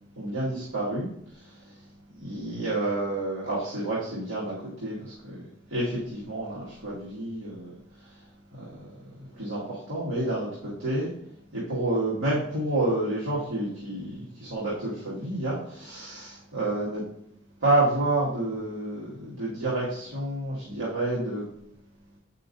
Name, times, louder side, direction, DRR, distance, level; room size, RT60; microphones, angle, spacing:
voice 1, 0.2-1.9 2.2-5.4 5.7-8.3 8.5-9.0 9.3-11.1 11.5-17.0 17.6-21.4, right 2 dB, 80° right, -9 dB, 2.0 m, -29 dB
7.8 x 5.6 x 2.6 m, 0.72 s
head